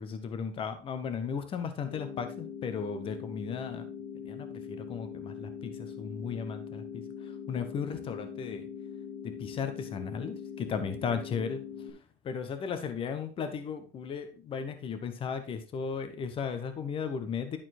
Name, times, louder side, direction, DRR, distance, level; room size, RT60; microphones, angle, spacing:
voice 1, 0.0-3.8 4.2-8.7 9.2-11.6 12.2-17.6, left 6 dB, 30° left, 9 dB, 1.1 m, -36 dB
sound 1, 1.9-11.9, left 7 dB, 80° left, 2.3 m, -42 dB
11.5 x 4.4 x 4.3 m, 0.34 s
cardioid pair, 140°, 17 cm